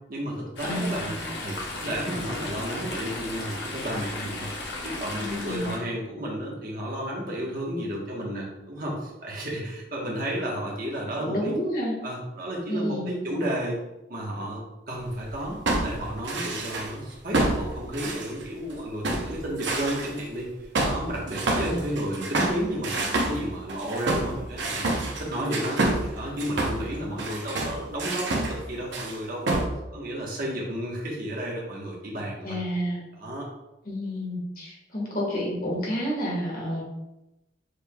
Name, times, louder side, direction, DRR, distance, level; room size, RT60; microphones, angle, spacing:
voice 1, 0.1-1.2 1.4-4.5 4.8-11.5 12.0-13.7 14.1-20.5 20.8-24.9 25.2-25.8 26.1-29.7 29.9-32.6 33.1-33.5, equal, 50° right, -3 dB, 1.2 m, -32 dB
Chatter / Stream, 0.6-5.8, left 2 dB, 65° left, 1.0 m, -35 dB
voice 2, 0.6-1.2 5.2-5.7 11.2-11.9 12.7-13.1 32.4-33.0 33.9-36.8, equal, 50° left, -4 dB, 1.6 m, -30 dB
sound 1, 15.2-16.9 17.3-18.7 19.0-20.2 20.7-28.6 28.9-29.2 29.5-29.7, right 2 dB, 70° right, 0.8 m, -28 dB
6.6 x 3.4 x 2.3 m, 0.94 s
head